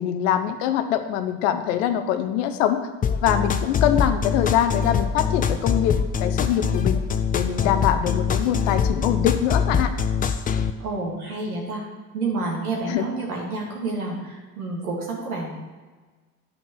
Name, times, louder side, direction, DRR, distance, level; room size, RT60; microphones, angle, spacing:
voice 1, 0.0-2.9 3.2-7.0 7.3-9.9 12.9-13.0, left 10 dB, 60° left, 10 dB, 0.8 m, -23 dB
sound 1, 3.0-10.7, left 6 dB, 20° left, 0.5 m, -23 dB
voice 2, 10.8-11.8 12.1-15.6, right 3 dB, 75° right, -2 dB, 2.2 m, -29 dB
11.0 x 5.5 x 4.5 m, 1.3 s
figure-of-eight pair, 60°, 45 cm